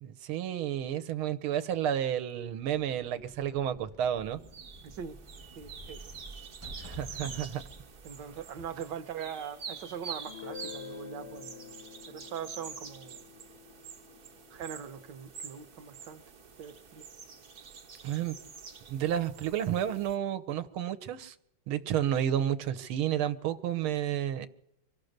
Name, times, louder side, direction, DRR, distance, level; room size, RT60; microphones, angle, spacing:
voice 1, 0.0-4.4 6.8-7.6 18.0-18.4 18.9-21.4 21.7-24.5, right 10 dB, 80° right, 1.8 m, -31 dB
sound 1, 2.6-9.3, right 1 dB, 20° right, 0.4 m, -50 dB
sound 2, 4.4-20.2, right 6 dB, 45° right, 1.4 m, -47 dB
voice 2, 4.8-5.2 5.5-6.0 8.0-11.8 12.1-13.2 14.5-16.2 16.6-17.0, right 8 dB, 60° right, 1.5 m, -41 dB
Guitar, 10.3-15.8, left 8 dB, 60° left, 0.7 m, -49 dB
25.0 x 16.5 x 6.6 m
omnidirectional pair, 2.3 m